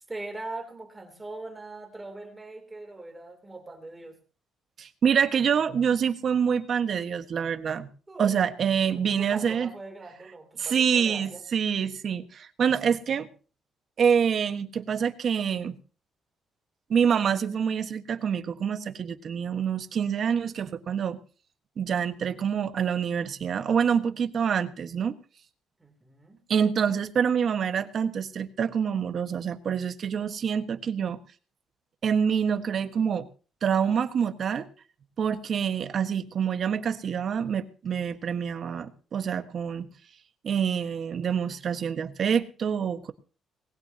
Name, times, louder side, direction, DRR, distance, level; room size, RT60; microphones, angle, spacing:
voice 1, 0.0-4.2 8.1-8.4 8.9-11.4 25.8-26.4, right 2 dB, 20° right, 6 dB, 3.2 m, -41 dB
voice 2, 4.8-7.9 8.2-9.7 10.6-13.3 14.0-15.8 16.9-21.2 21.8-25.1 26.5-31.2 32.0-33.3 33.6-34.7 35.2-39.9 40.4-43.1, right 7 dB, 55° right, 9 dB, 1.5 m, -26 dB
20.0 x 17.0 x 2.9 m, 0.38 s
cardioid pair, 90°, 0 cm